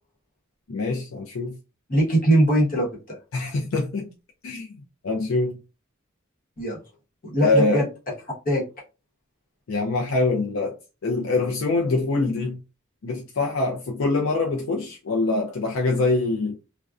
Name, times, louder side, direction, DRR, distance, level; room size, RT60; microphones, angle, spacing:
voice 1, 0.7-1.5 3.3-4.1 4.4-5.6 7.4-7.8 9.7-10.8 11.0-12.6 13.0-16.6, left 3 dB, 75° left, 0.4 m, -24 dB
voice 2, 1.9-3.2 6.6-6.8 7.2-7.9 8.4-8.6, right 1 dB, 45° left, 1.0 m, -21 dB
2.5 x 2.2 x 2.3 m
head